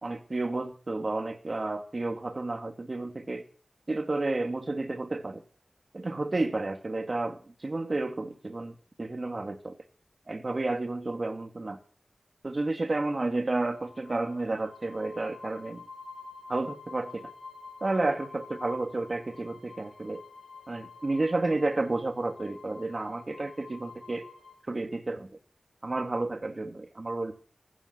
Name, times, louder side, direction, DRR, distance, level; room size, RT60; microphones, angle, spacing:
voice 1, 0.0-3.4 3.9-5.4 5.9-9.8 10.3-11.8 12.4-15.8 16.5-17.3 17.8-20.2 20.7-24.2 24.7-25.3 25.8-27.3, right 2 dB, 50° right, 6 dB, 2.4 m, -31 dB
sound 1, 13.7-24.5, left 4 dB, 55° left, 4.7 m, -48 dB
16.0 x 11.5 x 6.8 m, 0.43 s
wide cardioid pair, 55°, 0 cm